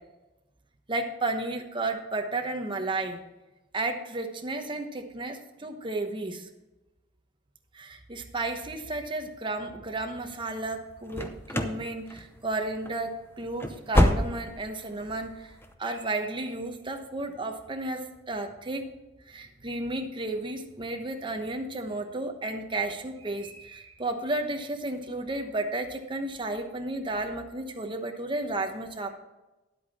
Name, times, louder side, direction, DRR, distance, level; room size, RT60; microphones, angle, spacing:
voice 1, 0.9-3.2 3.7-6.5 7.7-15.5 15.8-18.9 19.3-29.1, right 2 dB, 25° right, 4 dB, 1.0 m, -33 dB
sound 1, 11.1-11.8 12.1-12.5 12.8-13.0 13.4-14.7 15.0-15.1 15.6-15.7, left 1 dB, 10° left, 0.7 m, -26 dB
10.5 x 8.3 x 4.2 m, 1.0 s
head